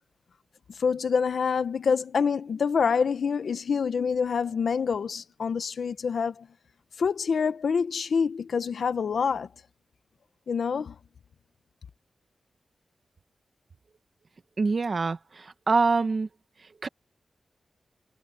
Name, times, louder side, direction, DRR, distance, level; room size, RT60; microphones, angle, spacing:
voice 1, 0.7-6.5 7.0-9.5 10.5-10.9, left 6 dB, 65° left, 1.2 m, -26 dB
voice 2, 14.6-16.3 16.8-16.9, right 4 dB, 40° right, 1.1 m, -25 dB
wide cardioid pair, 170°, 0 cm